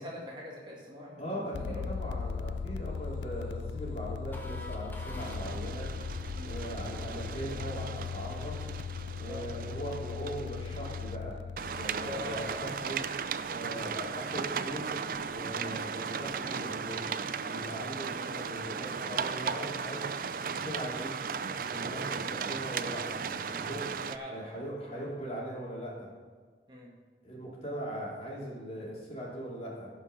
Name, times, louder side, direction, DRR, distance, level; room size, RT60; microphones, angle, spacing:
voice 1, 0.0-1.9 5.1-5.3 6.3-6.5 9.3-9.5 12.0-12.6 15.5-15.8 21.8-22.1 24.1-24.5 26.7-26.9, left 1 dB, 25° right, -4 dB, 2.0 m, -42 dB
voice 2, 1.2-1.6 1.9-5.9 6.4-8.6 9.2-11.3 11.7-13.0 13.5-14.9 15.3-17.0 17.4-20.0 20.4-21.1 21.5-23.9 24.3-26.1 27.2-29.9, right 1 dB, 35° left, -5 dB, 2.9 m, -40 dB
sound 1, 1.5-13.2, left 6 dB, 90° left, 0.3 m, -39 dB
sound 2, 4.3-9.2, left 1 dB, 10° left, 1.0 m, -51 dB
sound 3, 5.2-11.2 11.6-24.2, right 6 dB, 50° right, 0.4 m, -36 dB
16.5 x 5.5 x 5.1 m, 1.5 s
head